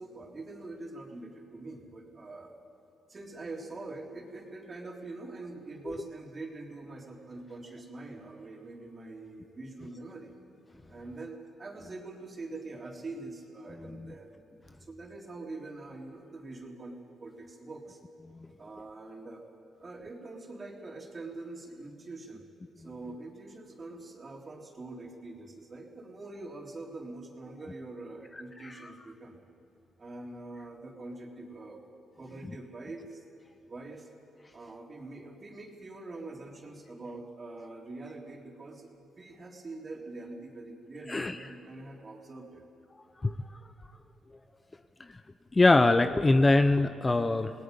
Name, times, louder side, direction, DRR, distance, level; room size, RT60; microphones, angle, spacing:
voice 1, 0.0-2.5 3.1-10.4 10.9-14.3 14.7-16.9 17.2-18.0 18.6-19.4 19.8-22.4 22.8-29.4 30.0-31.8 32.2-33.2 33.7-34.1 34.5-42.6, right 2 dB, 35° right, 0 dB, 3.5 m, -44 dB
voice 2, 45.5-47.5, left 2 dB, 20° left, 9 dB, 0.7 m, -22 dB
28.0 x 19.0 x 5.3 m, 2.8 s
cardioid pair, 90°, 0 cm